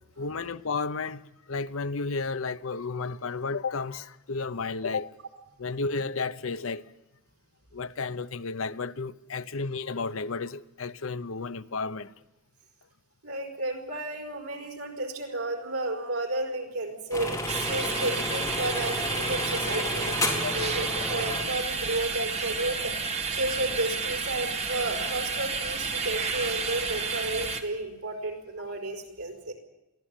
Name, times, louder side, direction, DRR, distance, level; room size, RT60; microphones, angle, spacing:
voice 1, 0.2-1.2 1.5-5.1 5.6-6.8 7.7-12.1 20.4-20.5 22.2-22.3, left 4 dB, 65° left, 0.7 m, -32 dB
voice 2, 13.2-22.9 23.3-29.5, right 2 dB, 85° right, 5.2 m, -32 dB
sound 1, 17.1-21.4, left 1 dB, 15° left, 4.2 m, -32 dB
sound 2, 17.5-27.6, right 4 dB, 30° right, 2.0 m, -31 dB
22.5 x 15.5 x 9.0 m
head